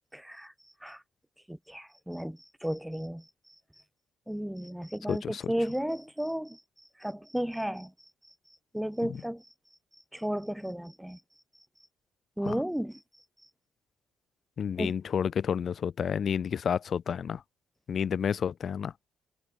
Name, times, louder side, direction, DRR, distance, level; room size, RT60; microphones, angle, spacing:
voice 1, 0.1-0.5 0.8-1.0 1.5-3.3 4.3-6.6 7.0-7.9 8.7-9.5 10.1-11.2 12.4-13.0 14.8-14.9, equal, 5° right, 0.8 m, -33 dB
voice 2, 5.1-5.5 12.4-12.6 14.6-17.4 17.9-18.9, left 7 dB, 55° left, 0.6 m, -30 dB
cardioid pair, 90°, 0 cm